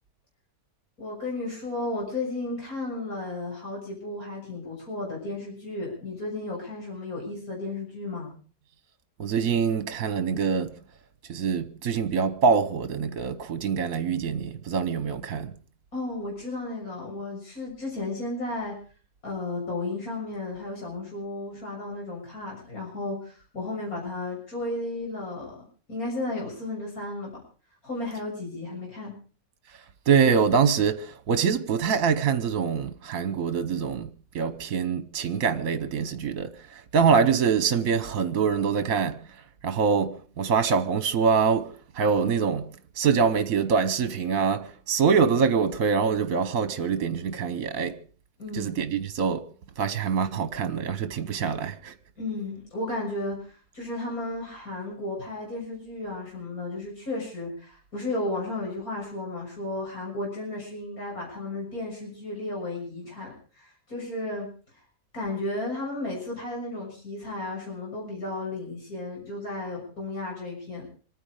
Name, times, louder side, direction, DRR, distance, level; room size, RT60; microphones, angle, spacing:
voice 1, 1.0-8.3 15.9-18.7 19.2-27.4 27.8-29.1 48.4-48.7 52.2-64.5 65.1-70.9, left 2 dB, 65° left, 7.0 m, -34 dB
voice 2, 9.2-10.7 11.3-15.5 30.1-34.1 34.3-39.2 39.6-42.7 43.0-47.9 48.5-49.4 49.8-51.9, right 6 dB, 65° right, 1.4 m, -24 dB
26.5 x 9.7 x 4.9 m
omnidirectional pair, 1.6 m